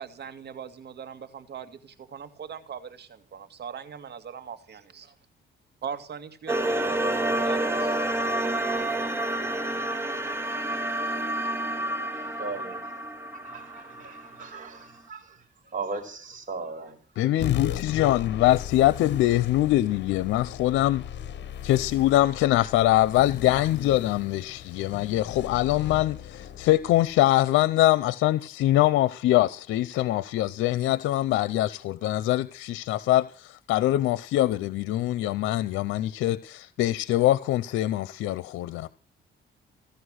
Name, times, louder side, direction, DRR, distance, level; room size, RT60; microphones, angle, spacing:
voice 1, 0.0-5.1 5.8-7.9, right 7 dB, 55° right, 2.2 m, -40 dB
sound 1, 6.5-14.5, right 1 dB, 10° right, 2.0 m, -29 dB
voice 2, 12.0-12.9 13.4-15.4 15.7-17.0, right 4 dB, 40° right, 5.2 m, -38 dB
voice 3, 17.2-21.0 21.6-38.9, left 15 dB, 90° left, 0.7 m, -23 dB
sound 2, 17.4-28.3, left 10 dB, 60° left, 1.0 m, -37 dB
16.0 x 11.5 x 6.4 m
cardioid pair, 90°, 20 cm